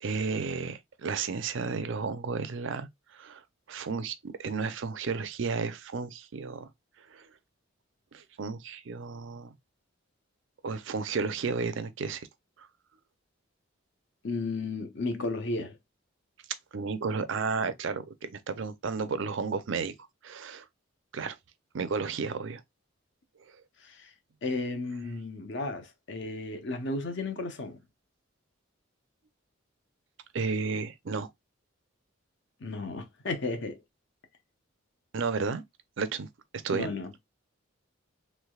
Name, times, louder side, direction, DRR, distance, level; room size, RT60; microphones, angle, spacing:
voice 1, 0.0-3.4 3.7-6.7 7.1-7.2 8.1-9.5 10.6-12.3 12.6-12.7 16.7-19.9 20.2-20.7 21.1-21.4 21.7-22.6 30.3-31.3 35.1-35.6 36.0-36.3 36.6-36.9, right 5 dB, 65° right, 0.5 m, -32 dB
voice 2, 14.2-15.8 23.8-24.1 24.4-27.8 32.6-33.8 36.7-37.1, left 3 dB, 60° left, 0.7 m, -34 dB
3.3 x 3.1 x 2.3 m
head